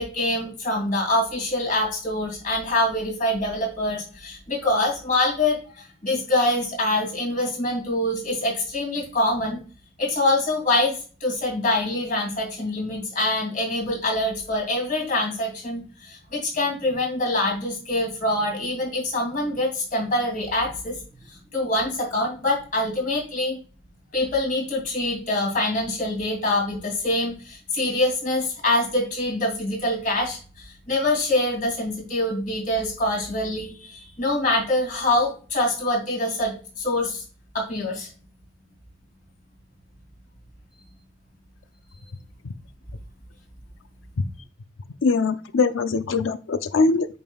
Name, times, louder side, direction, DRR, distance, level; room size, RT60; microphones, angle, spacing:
voice 1, 0.0-9.6 10.0-21.0 21.3-23.6 24.1-37.2 37.5-38.1, left 1 dB, 45° left, 0 dB, 2.6 m, -25 dB
voice 2, 45.0-47.1, left 4 dB, 85° left, 11 dB, 0.5 m, -22 dB
8.6 x 5.3 x 2.3 m, 0.37 s
head